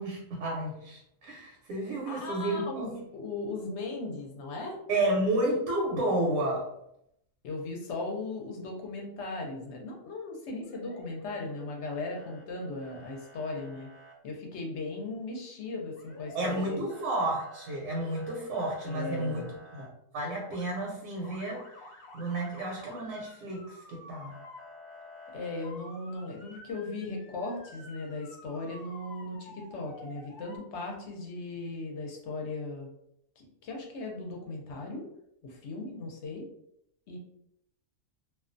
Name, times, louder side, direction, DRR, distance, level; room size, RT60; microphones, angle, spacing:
voice 1, 0.0-3.0 4.9-6.7 16.3-19.5 19.7-21.6 22.1-24.3, right 1 dB, 80° right, -2 dB, 1.0 m, -31 dB
voice 2, 2.0-4.8 7.4-13.9 14.2-16.9 18.8-19.5 25.3-32.9 33.4-35.0 35.4-36.4 37.1-37.2, left 2 dB, 65° left, 0 dB, 0.8 m, -37 dB
Motor vehicle (road) / Siren, 10.6-11.6 11.9-12.4 12.8-14.1 16.0-16.6 16.9-19.9 20.3-20.8 21.2-30.6, left 1 dB, 90° left, 1.0 m, -51 dB
2.4 x 2.3 x 2.5 m, 0.77 s
omnidirectional pair, 1.4 m